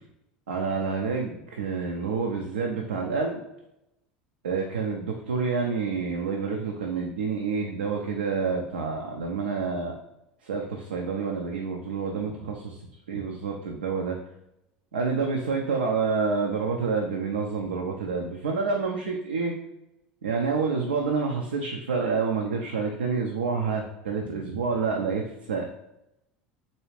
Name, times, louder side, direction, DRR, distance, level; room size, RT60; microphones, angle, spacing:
voice 1, 0.5-3.4 4.4-10.0 10.4-12.8 13.1-14.2 14.9-19.6 20.2-25.6, right 5 dB, 90° right, 1 dB, 0.4 m, -28 dB
4.0 x 2.3 x 3.1 m, 0.88 s
hypercardioid pair, 80°, 5 cm